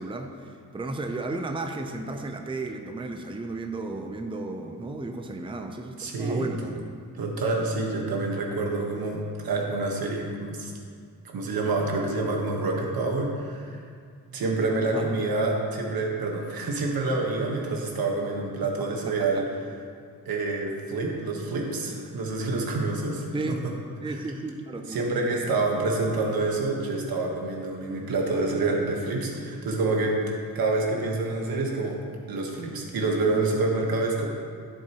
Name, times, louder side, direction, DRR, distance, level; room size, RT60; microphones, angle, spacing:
voice 1, 0.0-6.9 14.8-15.1 18.6-18.7 19.2-19.3 23.3-23.6 24.0-25.6, right 2 dB, 15° right, 4 dB, 0.6 m, -34 dB
voice 2, 6.0-6.5 7.2-10.7 11.3-13.8 14.3-19.6 20.2-23.7 24.0-24.2 24.9-32.0 32.3-34.3, right 3 dB, 80° right, 0 dB, 1.4 m, -27 dB
11.0 x 7.4 x 3.0 m, 2.1 s
cardioid pair, 85°, 35 cm